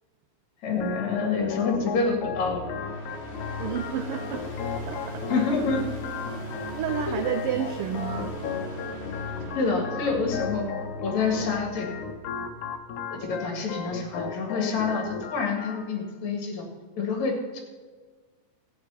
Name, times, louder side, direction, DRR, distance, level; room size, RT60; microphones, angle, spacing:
voice 1, 0.6-2.7 5.3-5.8 9.5-10.7 11.0-11.9 13.1-16.7 17.0-17.6, left 4 dB, 70° left, 2 dB, 3.3 m, -27 dB
Organ, 0.8-15.8, left 6 dB, 85° left, 2.4 m, -36 dB
sound 1, 2.0-13.0, left 2 dB, 40° left, 0.9 m, -38 dB
voice 2, 3.6-4.4 4.9-5.2 6.7-8.4, right 9 dB, 85° right, 8 dB, 1.2 m, -30 dB
14.5 x 8.6 x 5.7 m, 1.5 s
omnidirectional pair, 3.3 m